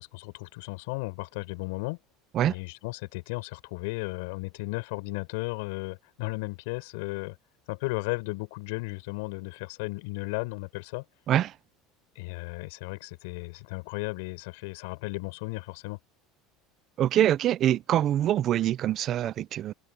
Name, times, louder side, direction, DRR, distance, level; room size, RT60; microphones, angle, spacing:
voice 1, 0.0-2.0 2.4-7.4 7.7-11.0 12.2-16.0, left 26 dB, 80° left, 7.3 m, -35 dB
voice 2, 17.0-19.7, right 12 dB, 50° right, 0.7 m, -24 dB
supercardioid pair, 105°, 0 cm